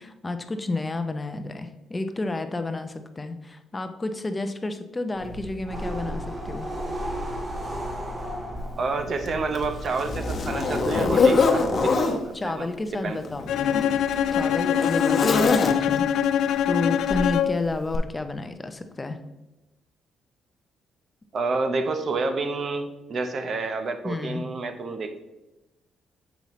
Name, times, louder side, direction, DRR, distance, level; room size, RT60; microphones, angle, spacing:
voice 1, 0.0-6.7 12.3-13.8 14.3-16.1 16.7-19.2 24.0-24.4, left 2 dB, 20° left, 8 dB, 0.6 m, -31 dB
sound 1, 5.2-12.0, equal, 30° right, 1.3 m, -35 dB
Zipper (clothing), 8.6-8.7 9.3-12.2 13.2-16.1 17.1-17.3 17.9-18.0, left 4 dB, 45° left, 0.9 m, -24 dB
voice 2, 8.8-13.2 21.3-25.2, right 3 dB, 50° right, 8 dB, 0.8 m, -29 dB
Bowed string instrument, 13.5-17.7, left 9 dB, 80° left, 0.4 m, -23 dB
7.0 x 5.5 x 3.1 m, 1.0 s
cardioid pair, 90°, 0 cm